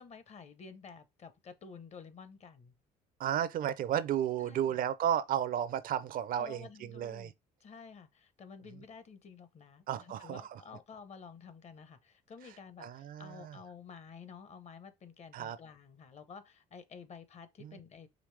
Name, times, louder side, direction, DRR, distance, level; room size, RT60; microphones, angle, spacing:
voice 1, 0.0-2.7 4.4-4.8 6.4-7.3 7.6-18.1, left 5 dB, 40° left, 0.7 m, -51 dB
voice 2, 3.2-7.3 9.9-10.6 12.8-13.6 15.3-15.6 17.6-17.8, right 10 dB, 55° right, 0.5 m, -33 dB
5.1 x 3.1 x 3.2 m
cardioid pair, 110°, 17 cm